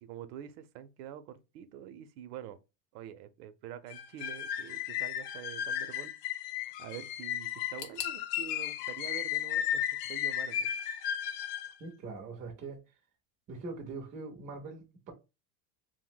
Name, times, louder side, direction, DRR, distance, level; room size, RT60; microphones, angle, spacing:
voice 1, 0.0-2.6 2.9-6.1 6.5-10.7, right 10 dB, 70° right, 0.6 m, -46 dB
sound 1, 3.9-11.7, left 10 dB, 60° left, 0.5 m, -34 dB
sound 2, 7.8-10.7 10.9-11.7 12.0-12.1 13.0-13.1, left 8 dB, 85° left, 0.8 m, -49 dB
voice 2, 11.8-12.8 13.5-15.1, right 3 dB, 20° right, 0.3 m, -42 dB
2.6 x 2.1 x 3.8 m
supercardioid pair, 150°, 46 cm